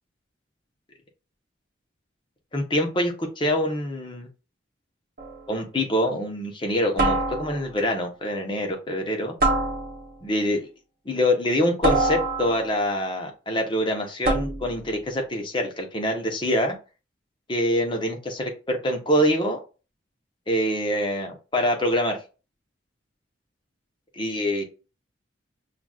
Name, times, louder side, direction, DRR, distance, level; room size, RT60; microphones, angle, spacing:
voice 1, 2.5-4.3 5.5-9.3 10.2-10.7 11.1-16.8 17.5-19.6 20.5-22.2 24.2-24.6, equal, 25° left, 3 dB, 0.8 m, -25 dB
sound 1, 5.2-5.5 7.0-7.8 9.4-10.2 11.8-12.8 14.2-14.8, right 2 dB, 50° right, 0.9 m, -25 dB
5.7 x 2.4 x 2.3 m, 0.32 s
head